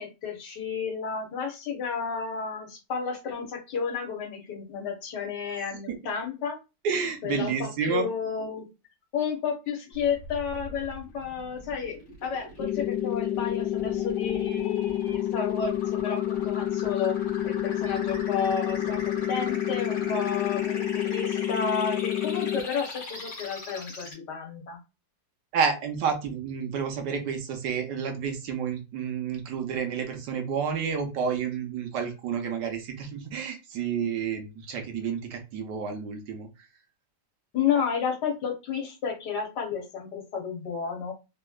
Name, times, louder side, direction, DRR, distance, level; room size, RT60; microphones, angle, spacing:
voice 1, 0.0-6.6 7.2-8.7 9.1-17.2 17.4-24.8 37.5-41.1, left 6 dB, 65° left, 1 dB, 1.5 m, -32 dB
voice 2, 6.8-8.1 25.5-36.5, right 6 dB, 75° right, 4 dB, 1.3 m, -30 dB
sound 1, 9.9-24.1, left 2 dB, 45° left, 1.5 m, -41 dB
sound 2, 12.6-22.6, left 12 dB, 90° left, 1.3 m, -29 dB
3.5 x 3.0 x 2.3 m, 0.27 s
omnidirectional pair, 2.0 m